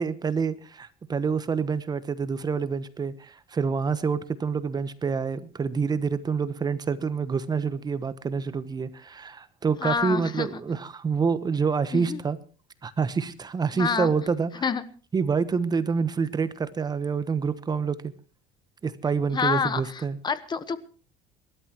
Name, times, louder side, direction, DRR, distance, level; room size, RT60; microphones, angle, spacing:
voice 1, 0.0-12.4 12.8-14.5 15.1-18.1 18.8-20.2, right 5 dB, 25° right, 14 dB, 1.1 m, -27 dB
voice 2, 9.8-10.5 11.9-12.2 13.7-14.1 14.6-14.8 19.3-20.8, left 6 dB, 25° left, 15 dB, 1.2 m, -28 dB
29.5 x 12.5 x 3.0 m, 0.38 s
cardioid pair, 125°, 16 cm